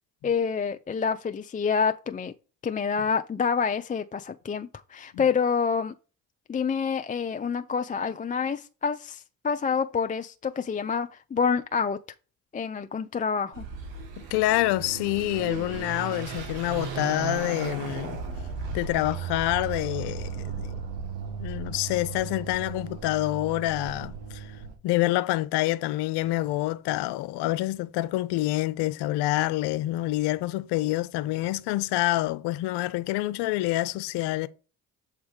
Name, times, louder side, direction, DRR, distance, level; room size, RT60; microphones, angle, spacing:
voice 1, 0.2-2.3 2.6-5.9 6.5-12.0 12.5-13.7, left 6 dB, 20° left, 0.4 m, -27 dB
Car passing by / Accelerating revving vroom, 13.5-24.8, right 5 dB, 80° right, 1.3 m, -36 dB
voice 2, 14.3-18.2 18.7-20.7 21.4-24.5 24.8-34.5, left 16 dB, 65° left, 0.6 m, -27 dB
7.2 x 3.4 x 5.2 m
hypercardioid pair, 55°, 43 cm